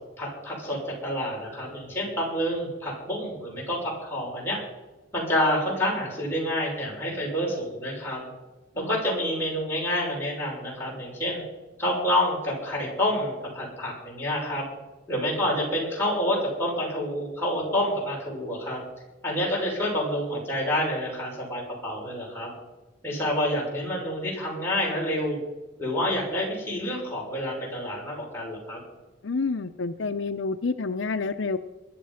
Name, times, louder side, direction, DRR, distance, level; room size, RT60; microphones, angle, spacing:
voice 1, 0.2-0.8 1.0-4.6 5.1-8.2 8.9-11.4 11.8-14.6 15.1-18.8 19.2-22.5 23.0-25.4 25.8-28.8, left 1 dB, 10° left, -4 dB, 6.4 m, -28 dB
voice 2, 29.2-31.6, left 4 dB, 70° left, 9 dB, 0.6 m, -29 dB
21.5 x 11.0 x 5.8 m, 1.1 s
head